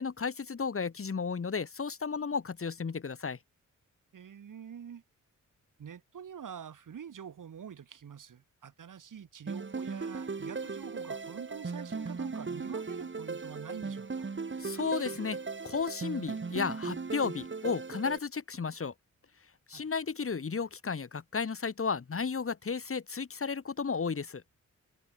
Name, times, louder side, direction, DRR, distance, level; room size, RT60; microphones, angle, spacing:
voice 1, 0.0-3.4 14.6-15.4 15.6-18.9 19.7-24.4, left 5 dB, 45° left, 2.1 m, -33 dB
voice 2, 4.1-5.0 5.8-14.3 19.7-19.9, right 8 dB, 80° right, 3.8 m, -46 dB
sound 1, 9.5-18.2, right 4 dB, 35° right, 2.9 m, -37 dB
wide cardioid pair, 90°, 31 cm